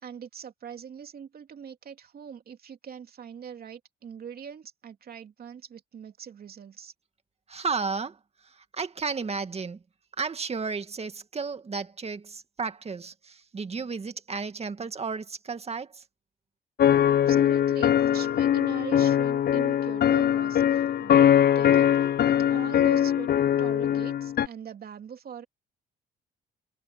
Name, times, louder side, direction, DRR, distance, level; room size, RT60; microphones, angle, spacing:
voice 1, 0.0-6.9 17.1-23.3 23.6-25.4, right 7 dB, 50° right, 3.0 m, -42 dB
voice 2, 7.5-8.2 8.7-9.8 10.2-16.0, right 4 dB, 30° right, 2.1 m, -33 dB
sound 1, 16.8-24.5, left 10 dB, 55° left, 0.6 m, -22 dB
cardioid pair, 85°, 19 cm